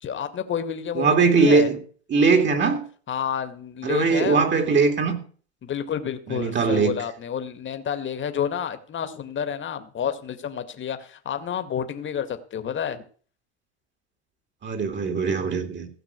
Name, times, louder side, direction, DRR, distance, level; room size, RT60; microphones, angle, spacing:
voice 1, 0.0-1.8 3.1-4.5 5.6-13.0, left 8 dB, 35° left, 2.2 m, -29 dB
voice 2, 0.9-1.8 2.1-2.8 3.8-5.2 6.3-6.9 14.6-15.9, right 4 dB, 35° right, 2.9 m, -20 dB
16.0 x 6.0 x 8.3 m
supercardioid pair, 95°, 32 cm